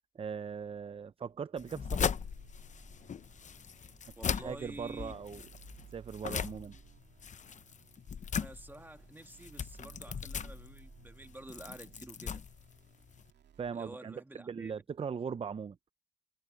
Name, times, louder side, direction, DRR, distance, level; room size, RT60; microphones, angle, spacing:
voice 1, 0.1-2.1 4.4-5.4 5.9-6.8 13.6-15.8, right 6 dB, 30° right, 0.5 m, -39 dB
sound 1, 1.6-13.3, left 7 dB, 40° left, 0.8 m, -39 dB
sound 2, 1.8-13.7, right 8 dB, 60° right, 2.6 m, -58 dB
voice 2, 4.2-5.1 8.3-12.4 13.7-14.8, right 1 dB, 10° right, 1.9 m, -49 dB
cardioid pair, 90°, 20 cm